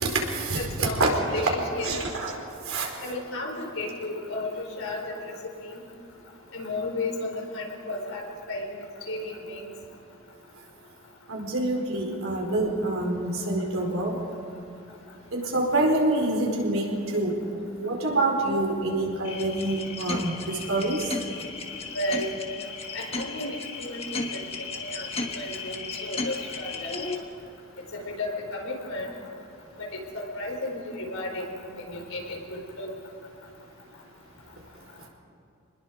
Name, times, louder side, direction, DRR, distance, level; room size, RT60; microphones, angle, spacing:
voice 1, 0.0-1.1 1.8-2.3 2.7-2.9 11.3-14.2 15.3-16.9 17.1-21.0, right 2 dB, 70° right, 0 dB, 4.5 m, -26 dB
voice 2, 0.5-2.0 3.0-5.4 5.7-5.8 6.5-9.6 21.9-22.3 22.9-25.1 25.3-26.9 27.9-29.1 29.8-32.9, left 1 dB, 70° left, 1 dB, 4.4 m, -34 dB
sound 1, 19.2-27.2, left 4 dB, 30° left, 1.6 m, -35 dB
26.0 x 20.5 x 4.8 m, 2.9 s
head